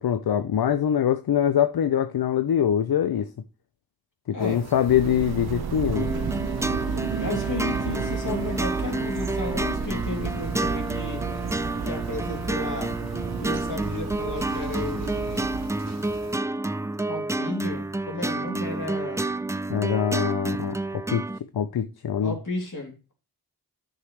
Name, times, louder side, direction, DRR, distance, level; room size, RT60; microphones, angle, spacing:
voice 1, 0.0-3.3 4.3-6.1 19.7-21.2 21.5-22.4, left 9 dB, 80° left, 0.6 m, -23 dB
sound 1, 4.4-16.4, right 3 dB, 45° right, 1.3 m, -43 dB
sound 2, 4.9-15.7, right 7 dB, 80° right, 0.6 m, -32 dB
sound 3, 5.9-21.4, right 2 dB, 10° right, 0.3 m, -29 dB
voice 2, 7.2-11.2 11.8-13.0 13.4-15.6 17.1-19.2 22.2-23.1, left 2 dB, 55° left, 3.0 m, -33 dB
10.0 x 6.7 x 3.3 m
cardioid pair, 40°, 37 cm